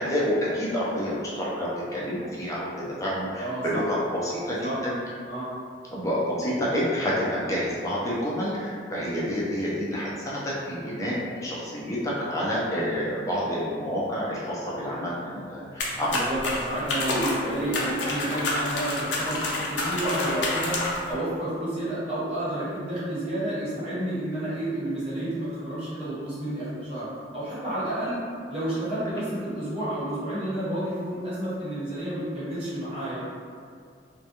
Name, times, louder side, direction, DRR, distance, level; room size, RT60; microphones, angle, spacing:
voice 1, 0.0-2.7 3.0-4.9 5.9-16.3, equal, 20° left, -7 dB, 0.4 m, -28 dB
voice 2, 3.4-3.8 4.6-4.7 5.3-5.5 16.1-20.8 21.1-27.1 27.3-28.2 28.5-33.3, right 1 dB, 30° right, -13 dB, 1.1 m, -30 dB
sound 1, 15.8-21.1, left 2 dB, 80° left, 0.5 m, -29 dB
2.2 x 2.2 x 2.8 m, 2.2 s
head